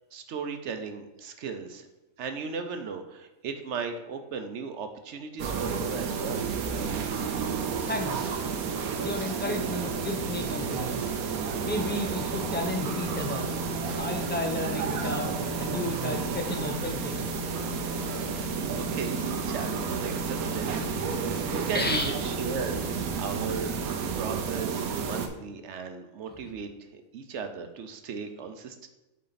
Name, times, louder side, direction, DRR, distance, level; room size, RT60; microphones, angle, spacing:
voice 1, 0.1-1.9 2.2-6.5 18.3-18.5 18.8-28.9, right 5 dB, 60° right, 7 dB, 0.9 m, -37 dB
sound 1, 5.4-25.3, right 6 dB, 85° right, 1.2 m, -31 dB
voice 2, 7.8-8.3 9.0-11.1 11.6-15.3 15.6-17.3 21.7-22.1, left 2 dB, 10° left, 2 dB, 0.5 m, -33 dB
sound 2, 12.3-23.9, left 5 dB, 60° left, 1.6 m, -39 dB
7.4 x 4.3 x 4.0 m, 1.0 s
omnidirectional pair, 1.5 m